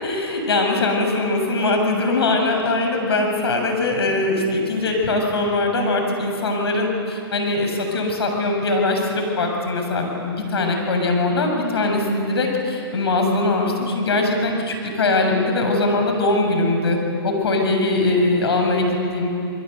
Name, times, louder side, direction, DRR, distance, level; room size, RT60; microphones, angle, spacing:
voice 1, 0.0-17.0 17.2-19.3, left 2 dB, 80° left, 2 dB, 7.3 m, -21 dB
29.5 x 22.5 x 8.1 m, 2.9 s
hypercardioid pair, 140°, 13 cm